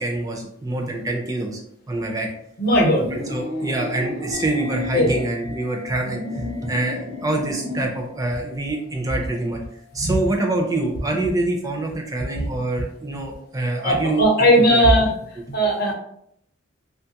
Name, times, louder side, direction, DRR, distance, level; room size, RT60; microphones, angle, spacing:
voice 1, 0.0-1.6 1.9-2.3 3.1-9.6 9.9-14.8, right 2 dB, 15° right, 1 dB, 0.4 m, -26 dB
voice 2, 2.6-3.1 4.9-5.2 9.9-10.2 12.3-12.5 13.8-15.1 15.5-15.9, equal, 50° left, -1 dB, 0.8 m, -17 dB
sound 1, 2.9-5.2 5.8-8.0, left 1 dB, 65° right, 0.6 m, -32 dB
sound 2, 4.3-11.2, left 5 dB, 80° left, 0.5 m, -43 dB
3.0 x 2.3 x 2.8 m, 0.72 s
head